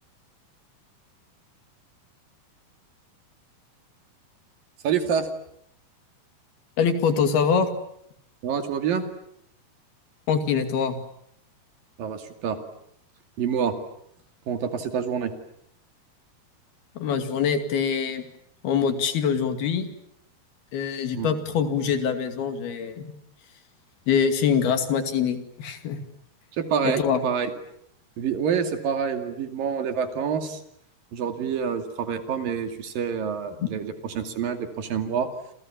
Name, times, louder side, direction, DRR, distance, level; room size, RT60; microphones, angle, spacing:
voice 1, 4.8-5.3 8.4-9.0 12.0-12.6 13.4-13.7 14.5-15.3 21.1-21.3 26.6-27.5 28.2-30.6 31.1-35.3, right 7 dB, 65° right, 8 dB, 4.0 m, -27 dB
voice 2, 6.8-7.7 10.3-11.0 17.0-18.2 18.6-19.9 20.7-23.1 24.1-26.0 26.8-27.2 33.6-33.7, left 7 dB, 80° left, 8 dB, 4.4 m, -24 dB
29.0 x 28.5 x 7.3 m, 0.73 s
omnidirectional pair, 4.4 m